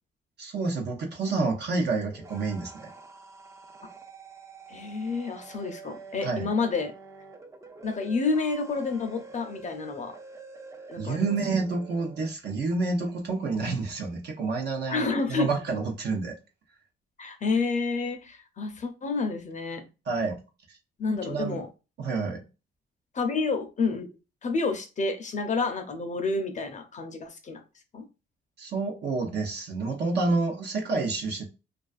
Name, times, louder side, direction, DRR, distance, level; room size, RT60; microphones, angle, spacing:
voice 1, 0.4-2.9 6.2-6.5 11.0-16.3 20.1-20.4 20.7-20.8 21.2-21.6 22.0-22.4 28.6-31.5, right 3 dB, 60° right, 0.6 m, -29 dB
sound 1, 1.9-12.3, right 4 dB, 15° right, 0.4 m, -47 dB
voice 2, 4.7-6.9 7.8-10.2 10.9-11.4 14.9-15.5 17.2-19.9 21.0-21.7 23.1-24.1 24.4-27.6 27.9-28.0, left 4 dB, 40° left, 0.5 m, -29 dB
2.4 x 2.3 x 2.4 m
cardioid pair, 90°, 20 cm